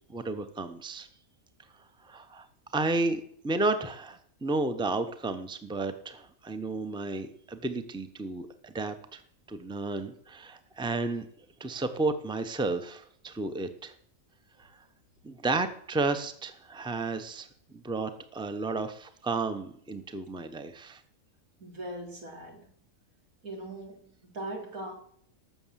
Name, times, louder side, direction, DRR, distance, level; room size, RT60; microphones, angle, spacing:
voice 1, 0.1-1.1 2.0-2.5 2.7-9.2 9.5-11.2 11.6-13.9 14.6-14.7 15.2-21.0, right 3 dB, 5° right, 9 dB, 0.8 m, -32 dB
voice 2, 21.6-22.7 23.4-24.9, right 1 dB, 85° right, 1 dB, 3.7 m, -40 dB
18.5 x 7.0 x 7.5 m, 0.65 s
omnidirectional pair, 1.4 m